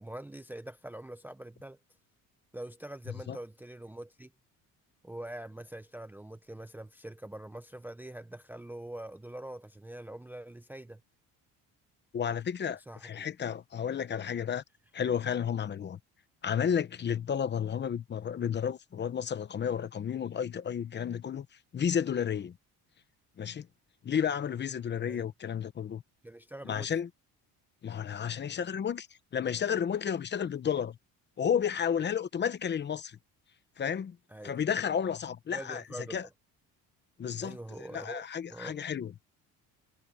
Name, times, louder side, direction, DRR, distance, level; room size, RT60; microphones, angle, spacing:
voice 1, 0.0-1.8 2.5-4.3 5.0-11.0 12.9-13.1 25.0-25.3 26.2-26.9 34.3-34.6 35.5-36.3 37.4-38.3 38.5-38.8, right 1 dB, 5° right, 0.6 m, -44 dB
voice 2, 12.1-14.6 14.9-16.0 16.4-21.5 21.7-22.5 23.4-23.7 24.0-26.0 26.6-27.1 27.8-29.1 29.3-31.0 31.4-33.2 33.8-34.2 34.4-35.8 36.1-36.3 37.2-39.1, left 8 dB, 30° left, 1.0 m, -32 dB
cardioid pair, 140°, 35 cm